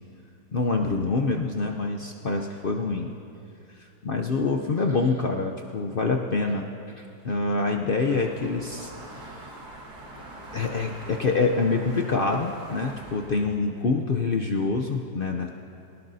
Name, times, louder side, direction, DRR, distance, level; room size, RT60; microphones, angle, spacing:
voice 1, 0.5-3.1 3.7-9.5 10.5-15.5, left 3 dB, 60° left, 2 dB, 0.5 m, -26 dB
sound 1, 8.1-13.4, right 2 dB, 70° right, 2.3 m, -43 dB
23.0 x 18.0 x 2.7 m, 2.7 s
omnidirectional pair, 1.8 m